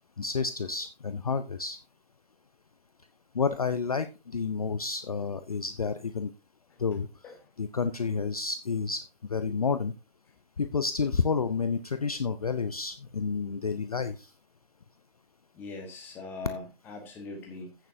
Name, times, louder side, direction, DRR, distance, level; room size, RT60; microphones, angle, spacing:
voice 1, 0.2-1.8 3.3-6.3 6.8-7.1 7.6-9.0 9.3-9.9 10.6-14.3, left 5 dB, 35° left, 12 dB, 0.6 m, -30 dB
voice 2, 15.5-17.8, left 3 dB, 5° left, 4 dB, 1.1 m, -41 dB
15.0 x 6.8 x 2.7 m, 0.27 s
figure-of-eight pair, 155°, 31 cm